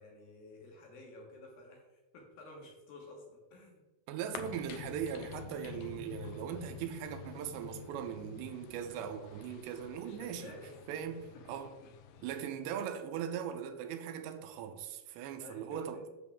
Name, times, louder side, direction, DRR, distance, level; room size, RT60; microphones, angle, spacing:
voice 1, 0.0-3.8 10.0-10.8 15.4-16.0, left 2 dB, 65° left, 2.6 m, -52 dB
voice 2, 4.1-10.5 10.9-11.7 12.2-16.0, right 8 dB, 85° right, 2.9 m, -40 dB
sound 1, 4.3-12.4, left 6 dB, 90° left, 3.0 m, -48 dB
8.2 x 6.9 x 3.5 m
omnidirectional pair, 5.1 m